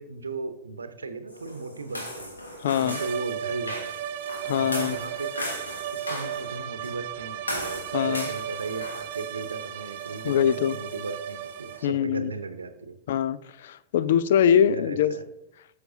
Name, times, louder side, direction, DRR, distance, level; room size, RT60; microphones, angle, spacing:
voice 1, 0.0-2.4 2.8-3.9 4.5-5.3 5.9-12.9 14.0-14.2 14.6-15.3, right 3 dB, 75° right, 0.8 m, -36 dB
sound 1, 1.3-11.8, left 1 dB, 80° left, 1.7 m, -38 dB
voice 2, 2.6-3.0 4.5-5.0 7.9-8.3 10.2-10.8 11.8-12.3 13.1-15.1, left 9 dB, 60° left, 0.4 m, -23 dB
sound 2, 2.8-12.0, right 10 dB, 50° right, 0.4 m, -35 dB
12.0 x 6.6 x 2.7 m
figure-of-eight pair, 90°, 0 cm